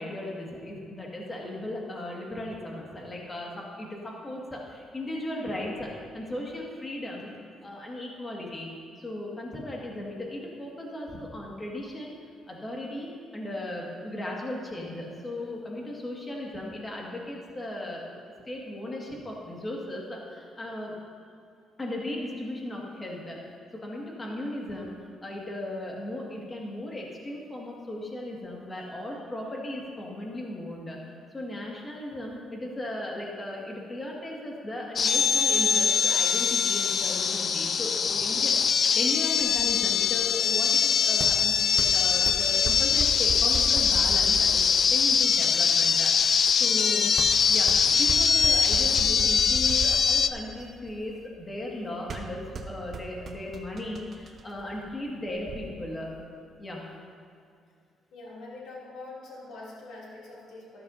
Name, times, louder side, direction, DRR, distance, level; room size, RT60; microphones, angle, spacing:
voice 1, 0.0-5.9 6.1-7.3 7.6-8.7 9.0-12.1 12.5-20.9 21.8-23.4 23.8-31.0 31.3-46.1 46.6-47.2 47.5-47.7 47.9-56.1 56.6-57.0, left 1 dB, 20° left, -2 dB, 1.9 m, -36 dB
sound 1, 35.0-50.3, left 6 dB, 45° left, 0.4 m, -23 dB
sound 2, 39.4-55.6, right 4 dB, 45° right, 0.8 m, -38 dB
voice 2, 58.1-60.8, left 2 dB, 80° left, -5 dB, 2.8 m, -44 dB
12.5 x 12.5 x 2.7 m, 2.3 s
cardioid pair, 115°, 0 cm